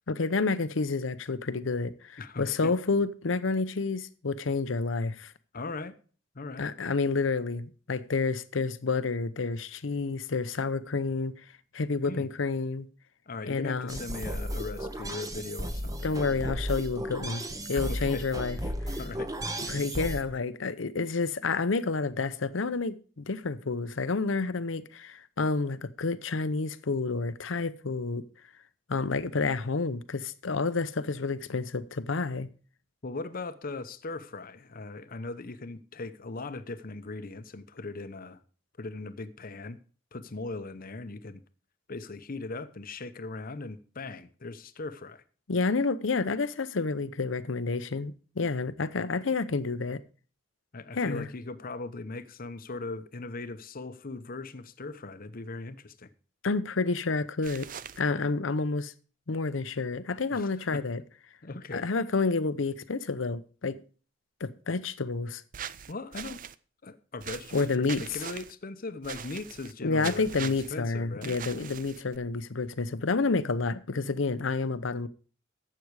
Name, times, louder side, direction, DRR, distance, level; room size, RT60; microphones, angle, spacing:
voice 1, 0.1-5.3 6.6-11.4 11.7-12.9 13.5-14.0 16.0-17.4 17.7-18.6 18.9-19.0 19.7-28.2 28.9-32.5 45.5-50.0 50.9-51.3 56.4-57.7 58.0-58.9 59.3-61.0 61.7-63.8 64.4-65.4 67.5-68.0 69.8-75.1, left 4 dB, 80° left, 0.7 m, -29 dB
voice 2, 2.2-2.7 5.5-5.9 6.3-6.7 12.0-12.3 13.3-16.3 17.7-18.3 19.0-19.3 33.0-38.4 38.8-39.8 40.1-41.4 41.9-45.2 50.7-56.1 60.3-60.8 61.4-61.9 65.9-66.4 66.8-71.4, left 3 dB, 50° left, 0.8 m, -39 dB
sound 1, 13.9-20.2, equal, 20° right, 1.0 m, -34 dB
sound 2, 57.4-58.0 65.5-66.5 67.2-68.5 69.0-69.7 70.0-70.7 71.2-72.2, right 9 dB, 45° right, 0.5 m, -41 dB
12.0 x 7.8 x 4.8 m
head